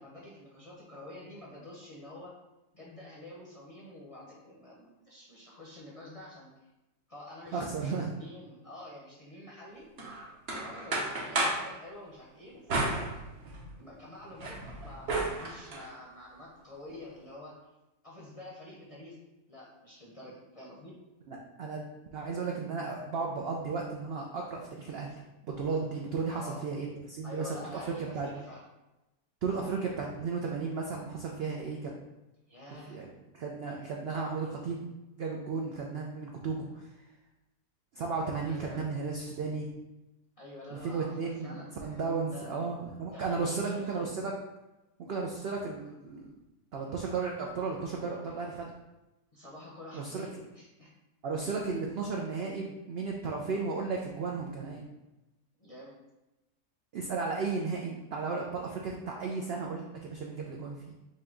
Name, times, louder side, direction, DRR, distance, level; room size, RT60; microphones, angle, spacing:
voice 1, 0.0-2.3 2.7-6.5 7.1-9.9 10.5-13.1 13.8-17.5 18.0-19.2 19.5-20.9 26.3-26.6 27.2-28.6 32.5-33.0 38.5-38.8 40.4-42.0 42.3-42.6 43.1-44.1 49.3-50.9 51.4-51.6 55.6-55.9, left 1 dB, 35° left, -5 dB, 0.6 m, -48 dB
voice 2, 7.5-8.1 21.3-21.9 22.1-25.1 25.5-27.6 27.9-28.3 29.4-31.9 32.9-33.1 33.3-34.9 35.2-36.9 37.9-39.7 40.7-44.3 45.0-46.3 46.7-48.7 49.9-50.3 51.2-54.8 56.9-60.8, right 4 dB, 75° right, 0 dB, 0.5 m, -34 dB
sound 1, 10.0-11.7 12.7-13.7 14.2-15.9, right 2 dB, 50° right, 0.9 m, -33 dB
5.3 x 2.2 x 3.7 m, 1.0 s
omnidirectional pair, 1.6 m